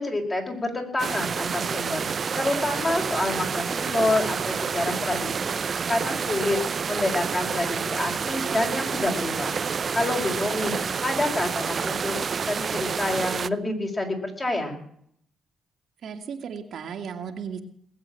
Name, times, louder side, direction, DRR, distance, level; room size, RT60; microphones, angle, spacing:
voice 1, 0.0-2.1 2.3-5.5 5.9-6.6 6.9-9.5 9.9-14.8, left 2 dB, 25° left, 2 dB, 4.9 m, -28 dB
sound 1, 1.0-13.5, right 6 dB, 45° right, 0.5 m, -28 dB
voice 2, 16.0-17.6, right 7 dB, 65° right, 4 dB, 2.1 m, -35 dB
20.0 x 8.1 x 8.9 m, 0.66 s
cardioid pair, 90°, 0 cm